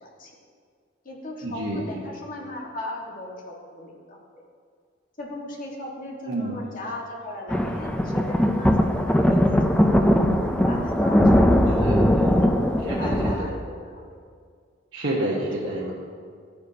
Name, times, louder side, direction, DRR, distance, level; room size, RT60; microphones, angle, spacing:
voice 1, 0.0-0.3 1.0-4.4 5.2-8.7 9.1-10.0 10.6-11.5 11.9-14.0 15.4-15.7, left 1 dB, 45° left, -2 dB, 1.6 m, -37 dB
voice 2, 1.4-2.0 6.3-6.6 11.5-12.1 12.9-13.5 14.9-15.9, right 1 dB, 75° right, -5 dB, 1.2 m, -29 dB
sound 1, 7.5-13.4, equal, 5° left, 0.5 m, -20 dB
12.5 x 9.2 x 2.9 m, 2.1 s
head